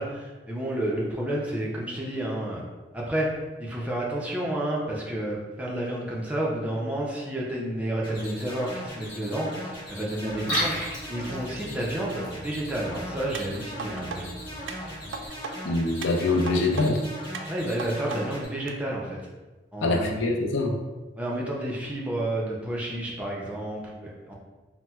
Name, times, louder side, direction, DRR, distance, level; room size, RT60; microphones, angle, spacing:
voice 1, 0.0-2.6 2.9-14.6 17.5-19.2 19.7-20.2 21.2-24.3, right 1 dB, 10° right, -4 dB, 0.4 m, -30 dB
sound 1, 8.0-18.4, equal, 30° left, 1.1 m, -39 dB
Liquid, 10.3-15.3, equal, 60° left, 1.0 m, -36 dB
sound 2, 13.3-14.2 14.7-15.5 16.0-16.9 17.3-18.2 18.7-18.8, right 5 dB, 85° right, 0.3 m, -37 dB
voice 2, 15.6-17.0 19.8-20.7, left 2 dB, 90° left, 2 dB, 0.4 m, -24 dB
4.1 x 2.0 x 2.2 m, 1.2 s
head